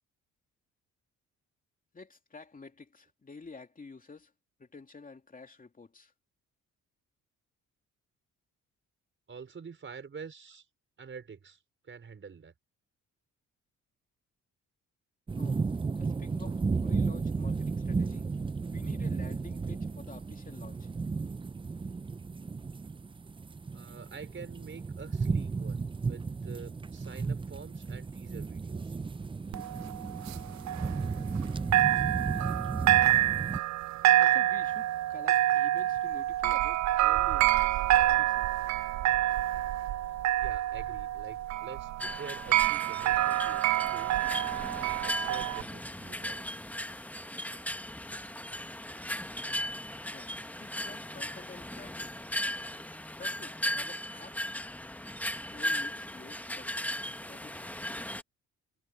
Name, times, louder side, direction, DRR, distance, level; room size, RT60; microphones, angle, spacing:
voice 1, 1.9-4.3 4.6-6.1 15.4-15.6 16.0-18.3 18.7-20.9 34.2-38.5 50.1-52.1 53.2-54.4 55.5-56.9 57.3-57.7, left 4 dB, 25° left, 2.8 m, -50 dB
voice 2, 9.3-10.7 11.0-12.5 23.7-29.0 40.4-43.6 43.9-46.4, right 5 dB, 40° right, 5.4 m, -47 dB
sound 1, 15.3-33.6, right 4 dB, 15° right, 0.5 m, -34 dB
sound 2, 29.5-31.5 31.7-45.6, right 14 dB, 65° right, 0.5 m, -27 dB
sound 3, 42.0-58.2, left 1 dB, 5° left, 1.2 m, -37 dB
cardioid pair, 90°, 30 cm